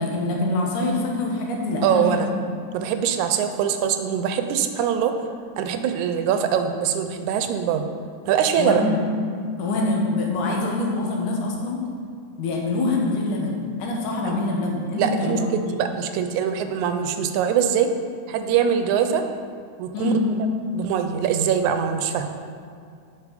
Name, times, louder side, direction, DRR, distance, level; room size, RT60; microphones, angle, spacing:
voice 1, 0.0-2.3 8.6-9.0 9.6-11.8 12.4-15.8 19.9-20.2, left 2 dB, 90° left, 0 dB, 2.7 m, -25 dB
voice 2, 1.8-2.3 2.7-5.1 5.6-7.9 8.3-8.8 14.3-14.4 15.0-17.9 18.3-19.2 19.8-20.1 20.7-22.3, right 8 dB, 80° right, 7 dB, 1.9 m, -23 dB
8.2 x 5.6 x 4.9 m, 2.3 s
omnidirectional pair, 3.5 m